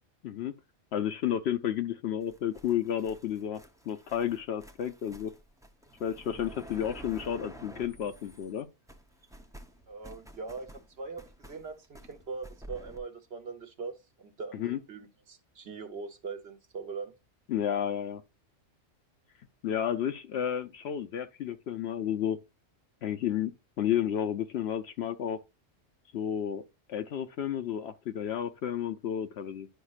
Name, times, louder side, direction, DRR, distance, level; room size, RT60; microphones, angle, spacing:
voice 1, 0.9-5.3 6.0-8.7 14.5-14.8 17.5-18.2 19.6-22.4 23.0-23.5 23.8-25.4 26.1-26.6 26.9-29.7, left 10 dB, 65° left, 0.8 m, -31 dB
sound 1, 2.2-8.6 8.9-13.0, right 1 dB, 5° right, 0.4 m, -50 dB
voice 2, 9.9-17.1, right 4 dB, 55° right, 1.2 m, -41 dB
10.0 x 5.3 x 2.4 m
omnidirectional pair, 1.3 m